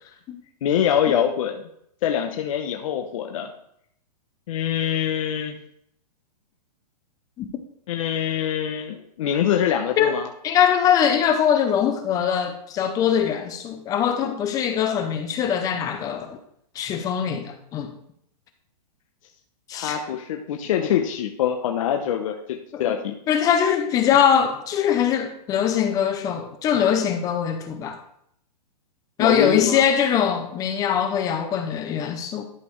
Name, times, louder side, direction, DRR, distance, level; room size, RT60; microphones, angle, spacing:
voice 1, 0.6-1.6 2.0-3.5 4.5-5.5 7.9-10.3 19.7-23.1 29.2-29.8, left 9 dB, 55° left, 0.8 m, -24 dB
voice 2, 10.4-16.4 16.8-17.9 19.7-20.0 22.7-22.8 23.3-28.0 29.2-32.4, left 8 dB, 15° left, 0.6 m, -22 dB
11.5 x 5.2 x 3.1 m
hypercardioid pair, 155°, 21 cm